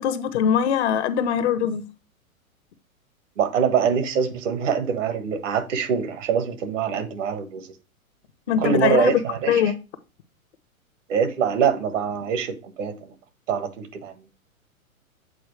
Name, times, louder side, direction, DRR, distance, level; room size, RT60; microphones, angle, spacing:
voice 1, 0.0-1.8 8.5-9.1 9.5-9.7, left 8 dB, 50° left, 0.9 m, -22 dB
voice 2, 3.4-7.7 8.6-9.6 11.1-13.1 13.5-14.1, right 6 dB, 60° right, 1.4 m, -24 dB
8.0 x 4.3 x 3.1 m
figure-of-eight pair, 110°, 43 cm